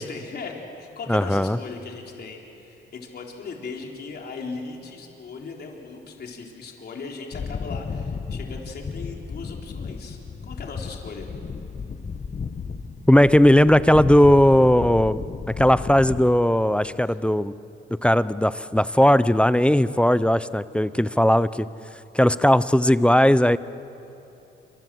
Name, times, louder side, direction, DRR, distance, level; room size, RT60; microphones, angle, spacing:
voice 1, 0.0-11.3 17.1-17.2, left 4 dB, 55° left, 1 dB, 3.9 m, -38 dB
voice 2, 1.1-1.6 13.1-15.2 15.6-17.5 18.0-21.7 22.1-23.6, left 1 dB, 5° left, 16 dB, 0.6 m, -17 dB
sound 1, 7.3-16.3, left 5 dB, 35° left, 1.3 m, -34 dB
27.0 x 25.5 x 7.8 m, 2.9 s
cardioid pair, 90°, 20 cm